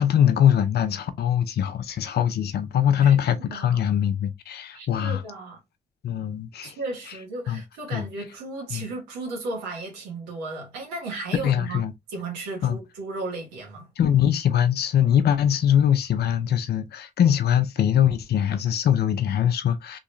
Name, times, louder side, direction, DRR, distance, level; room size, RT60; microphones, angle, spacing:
voice 1, 0.0-5.2 6.0-6.8 7.5-7.6 7.9-8.1 8.7-8.9 11.4-11.9 12.6-12.8 14.0-20.0, left 9 dB, 65° left, 0.6 m, -22 dB
voice 2, 3.0-3.8 4.7-5.6 6.6-11.8 12.1-13.9, right 3 dB, 90° right, 1.3 m, -35 dB
3.6 x 3.0 x 2.6 m
hypercardioid pair, 45°, 18 cm